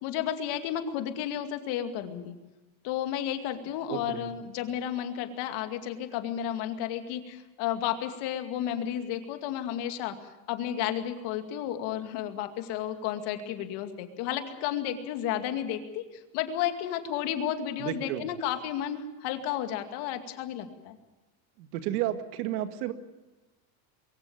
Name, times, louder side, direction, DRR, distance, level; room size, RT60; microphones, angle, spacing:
voice 1, 0.0-2.3 2.8-10.1 10.5-21.0, left 10 dB, 60° left, 7 dB, 2.5 m, -32 dB
voice 2, 3.9-4.3 17.8-18.3 21.6-22.9, right 12 dB, 80° right, 9 dB, 2.1 m, -32 dB
23.0 x 16.0 x 8.8 m, 1.1 s
cardioid pair, 145°, 44 cm